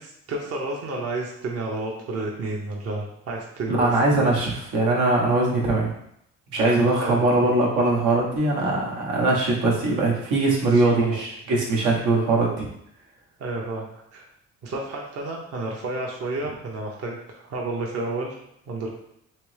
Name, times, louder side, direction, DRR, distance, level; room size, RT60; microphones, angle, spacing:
voice 1, 0.0-3.9 7.0-7.2 10.7-11.2 13.4-14.2 14.6-18.3 18.7-18.9, right 2 dB, 55° right, -1 dB, 0.7 m, -31 dB
voice 2, 3.7-5.9 6.5-12.7, right 2 dB, 85° right, -3 dB, 1.0 m, -21 dB
3.3 x 3.0 x 3.2 m, 0.74 s
cardioid pair, 90°, 30 cm